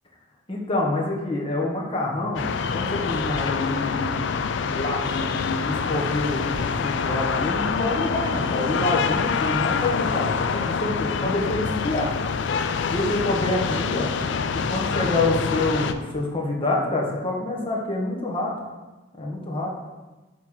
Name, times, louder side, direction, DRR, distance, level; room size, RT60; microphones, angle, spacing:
voice 1, 0.5-4.2 4.7-12.1 12.9-14.1 14.5-18.5 19.1-19.7, left 2 dB, 30° left, -2 dB, 1.3 m, -27 dB
sound 1, 2.3-15.9, left 5 dB, 65° left, 0.4 m, -26 dB
7.2 x 3.2 x 5.6 m, 1.1 s
head